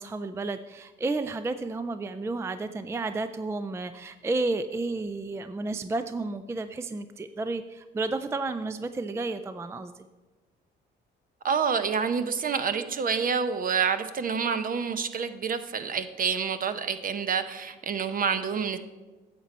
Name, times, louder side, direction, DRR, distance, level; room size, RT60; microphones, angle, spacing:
voice 1, 0.0-9.9, right 3 dB, 15° right, 11 dB, 0.4 m, -32 dB
voice 2, 11.4-18.8, right 6 dB, 45° right, 10 dB, 0.7 m, -28 dB
9.4 x 7.4 x 4.1 m, 1.3 s
cardioid pair, 90°, 20 cm